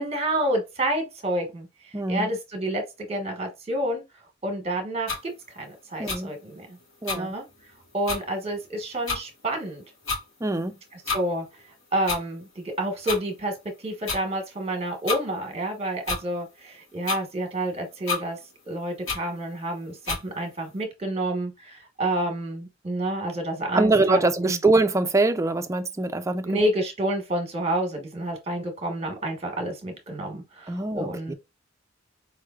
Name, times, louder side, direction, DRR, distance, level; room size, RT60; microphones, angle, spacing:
voice 1, 0.0-1.7 2.1-2.8 3.1-4.0 4.4-5.2 5.5-6.8 7.1-7.4 7.9-9.8 11.1-11.4 11.9-13.5 13.8-18.4 18.7-24.6 26.4-31.3, right 1 dB, 30° right, 1.2 m, -29 dB
voice 2, 1.9-2.3 6.0-6.3 7.0-7.3 10.4-10.7 23.7-26.7 30.7-31.3, right 2 dB, 15° right, 0.4 m, -23 dB
sound 1, 5.1-5.2 6.1-6.2 7.0-7.2 7.7-7.8 8.0-8.2 9.1-9.2 10.0-10.2 11.0-11.2 12.1-12.2 13.1-13.2 14.1-14.2 15.1-15.2 16.0-16.2 17.0-17.2 18.1-18.2 19.1-19.2 20.0-20.2, left 4 dB, 75° left, 2.1 m, -28 dB
4.6 x 3.2 x 2.4 m
head